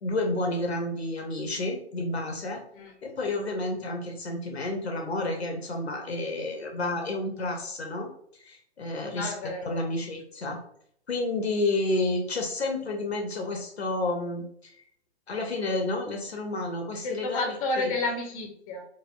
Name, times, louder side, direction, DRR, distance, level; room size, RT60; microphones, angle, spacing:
voice 1, 0.0-2.6 3.0-9.3 9.6-10.6 11.1-14.7 15.3-17.9, left 2 dB, 70° left, 3 dB, 0.8 m, -30 dB
voice 2, 9.1-9.7 17.0-18.9, left 2 dB, 35° left, 2 dB, 0.9 m, -31 dB
4.1 x 2.5 x 2.5 m, 0.66 s
figure-of-eight pair, 120°, 34 cm